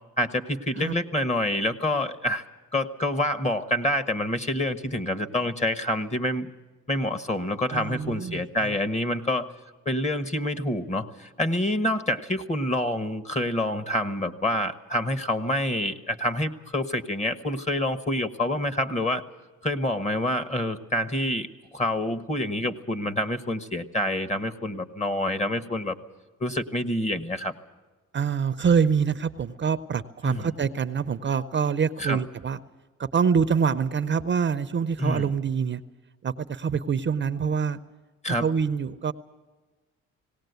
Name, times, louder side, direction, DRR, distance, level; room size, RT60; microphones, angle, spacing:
voice 1, 0.2-2.4 2.7-6.5 6.9-9.5 9.8-19.2 19.6-25.9 26.4-27.5 30.2-30.5 32.0-32.2 35.0-35.3 38.2-38.4, left 1 dB, 25° left, 11 dB, 1.3 m, -27 dB
voice 2, 7.7-8.8 28.1-32.6 33.0-35.8 36.2-37.8 38.4-39.1, right 6 dB, 40° right, 12 dB, 0.7 m, -25 dB
18.5 x 18.0 x 8.1 m, 1.3 s
cardioid pair, 90°, 30 cm